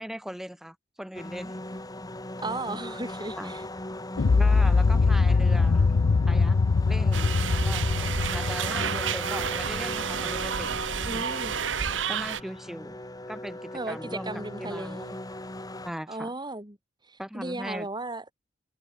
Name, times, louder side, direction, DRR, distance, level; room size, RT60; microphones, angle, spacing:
voice 1, 0.0-1.5 3.4-3.5 4.4-6.0 6.3-6.6 6.9-7.4 7.7-7.9 8.3-10.8 11.1-11.3 12.1-13.0 13.3-15.0 15.9-16.3 17.2-17.9, equal, ahead, 7.7 m, -38 dB
sound 1, 1.1-15.9, left 1 dB, 20° left, 3.4 m, -39 dB
voice 2, 2.4-3.6 11.0-11.5 13.7-15.2 16.1-16.8 17.1-18.2, right 2 dB, 25° right, 4.3 m, -35 dB
sound 2, 4.2-10.2, left 4 dB, 75° left, 0.5 m, -23 dB
sound 3, 7.1-12.4, right 7 dB, 80° right, 1.2 m, -30 dB
head